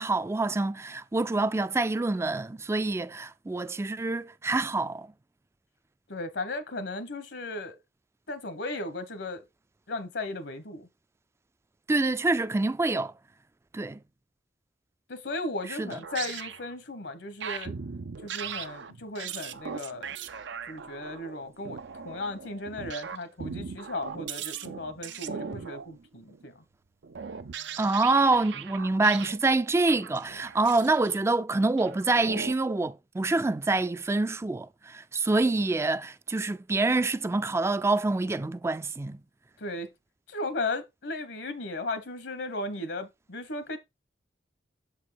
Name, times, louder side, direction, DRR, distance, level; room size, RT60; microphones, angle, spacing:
voice 1, 0.0-5.1 11.9-13.1 13.7-14.0 15.8-16.0 27.8-39.2, right 3 dB, 15° right, 0.3 m, -26 dB
voice 2, 6.1-7.8 8.3-9.4 9.9-10.9 15.1-17.7 18.2-20.1 20.7-21.8 22.0-26.6 39.6-39.9 40.3-43.8, left 2 dB, 75° left, 1.2 m, -36 dB
sound 1, 15.9-16.7 17.4-26.4 27.0-29.4 29.7-31.2 31.8-32.5, right 7 dB, 80° right, 0.6 m, -39 dB
7.0 x 4.6 x 4.3 m
head